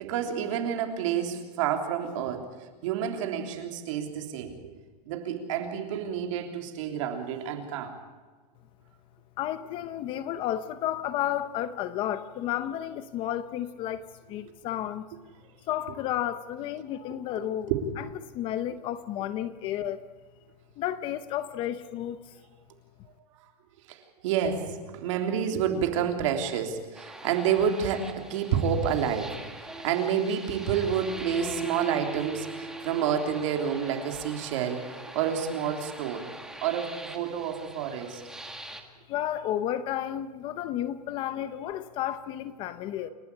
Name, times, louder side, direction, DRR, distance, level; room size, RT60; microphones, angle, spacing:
voice 1, 0.0-2.5 2.8-4.6 5.0-7.9 17.7-17.8 23.9-29.4 29.8-34.8 35.1-36.3 36.6-38.2, right 8 dB, 50° right, 5 dB, 3.4 m, -29 dB
voice 2, 9.4-14.0 14.3-15.1 15.7-17.7 18.0-20.0 20.8-22.4 39.1-43.1, left 11 dB, 25° left, 13 dB, 0.8 m, -32 dB
sound 1, 26.9-38.8, right 2 dB, 5° right, 1.7 m, -41 dB
29.0 x 12.0 x 8.7 m, 1.5 s
supercardioid pair, 165°, 20 cm